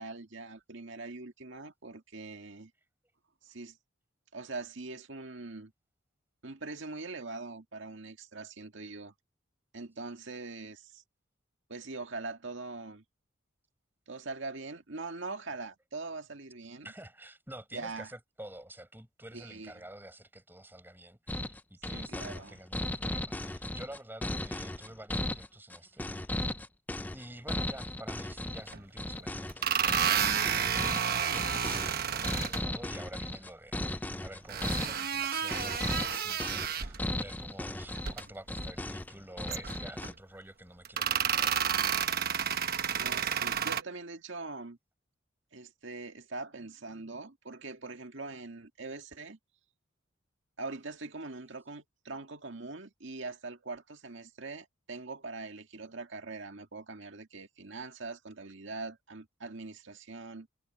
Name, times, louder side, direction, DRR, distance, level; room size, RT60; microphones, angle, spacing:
voice 1, 0.0-2.7 3.4-3.8 4.3-5.7 6.4-9.1 9.7-11.0 11.7-13.0 14.1-16.9 17.7-18.1 19.3-19.7 21.9-22.5 42.9-44.8 45.5-49.4 50.6-60.5, right 3 dB, 65° right, 2.0 m, -42 dB
voice 2, 16.8-26.5 27.1-31.0 32.1-41.8, right 1 dB, 10° right, 7.4 m, -49 dB
sound 1, 21.3-40.1, left 1 dB, 10° left, 0.4 m, -36 dB
sound 2, 28.7-28.8 29.5-32.6 34.5-37.0 37.9-38.2 38.6-38.7 39.5-40.1 40.8-43.8, right 8 dB, 50° right, 1.1 m, -30 dB
head